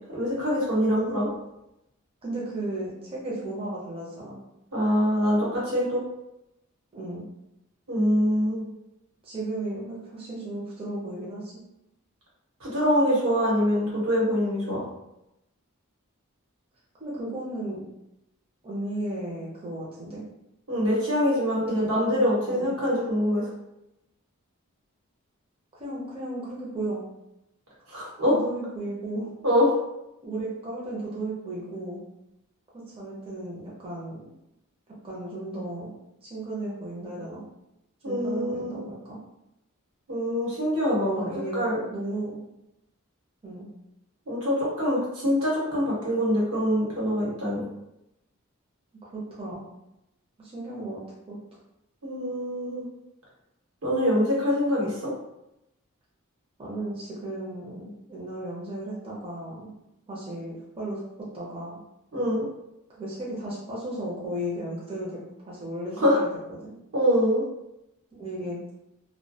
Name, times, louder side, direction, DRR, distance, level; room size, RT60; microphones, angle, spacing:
voice 1, 0.1-1.3 4.7-6.0 7.9-8.6 12.6-14.8 20.7-23.4 27.9-28.3 29.4-29.7 38.0-38.8 40.1-41.2 41.5-41.8 44.3-47.6 52.0-52.9 53.8-55.1 62.1-62.5 66.0-66.2 66.9-67.5, equal, 75° right, -5 dB, 1.0 m, -24 dB
voice 2, 2.2-4.4 6.9-7.3 9.2-11.5 17.0-17.8 18.6-20.2 21.7-21.9 22.4-22.7 25.7-27.0 28.3-29.3 30.2-32.0 32.9-34.3 35.0-35.9 36.2-37.4 38.0-39.2 41.0-42.4 43.4-43.7 49.0-49.6 50.4-51.0 51.3-51.6 56.6-59.7 60.1-61.0 61.3-61.8 62.9-65.2 65.4-66.7 68.1-68.6, right 1 dB, 25° right, -6 dB, 0.5 m, -35 dB
2.2 x 2.1 x 2.6 m, 0.87 s
head